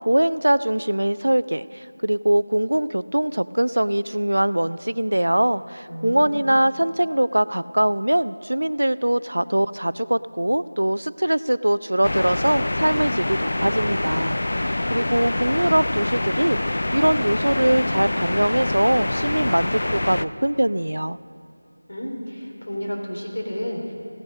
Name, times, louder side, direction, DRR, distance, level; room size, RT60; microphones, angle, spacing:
voice 1, 0.0-21.2, right 1 dB, 85° right, 17 dB, 0.4 m, -22 dB
voice 2, 5.9-6.5 21.9-23.9, equal, 65° left, -1 dB, 3.2 m, -31 dB
sound 1, 12.0-20.3, left 1 dB, 45° left, 0.4 m, -25 dB
15.5 x 9.6 x 5.3 m, 2.6 s
figure-of-eight pair, 175°, 0 cm